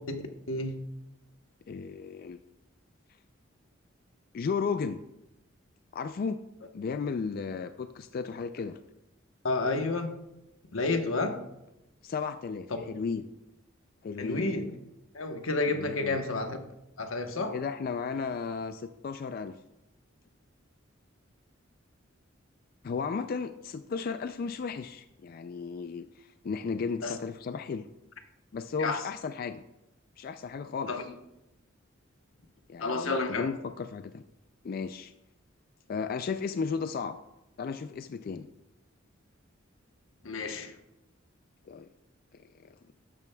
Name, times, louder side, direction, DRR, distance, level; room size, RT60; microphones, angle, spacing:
voice 1, 0.5-0.8 9.4-10.2 10.7-11.4 14.2-14.7 15.1-16.6 17.0-17.5 27.0-27.1 28.8-29.0 30.9-31.0 32.8-33.5 40.2-40.7, left 3 dB, 90° left, 5 dB, 1.1 m, -30 dB
voice 2, 1.7-2.4 4.3-5.0 5.9-6.4 6.7-8.8 12.0-13.3 14.0-14.5 15.7-16.2 17.5-19.6 22.8-27.9 28.5-29.6 30.2-30.9 32.7-34.2 34.6-35.1 35.9-37.2 37.6-38.5 41.7-41.9 42.3-42.7, left 5 dB, 45° left, 9 dB, 0.3 m, -34 dB
12.0 x 8.8 x 2.3 m, 0.89 s
head